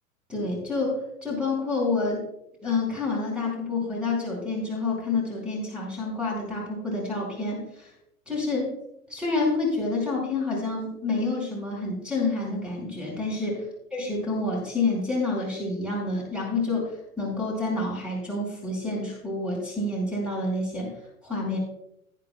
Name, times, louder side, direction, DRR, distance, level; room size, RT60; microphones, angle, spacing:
voice 1, 0.3-2.2 2.6-7.9 8.3-8.7 9.1-13.5 13.9-16.9 17.2-20.9 21.2-21.6, left 3 dB, ahead, -3 dB, 5.0 m, -28 dB
19.0 x 9.5 x 2.3 m, 0.79 s
figure-of-eight pair, 95°, 41 cm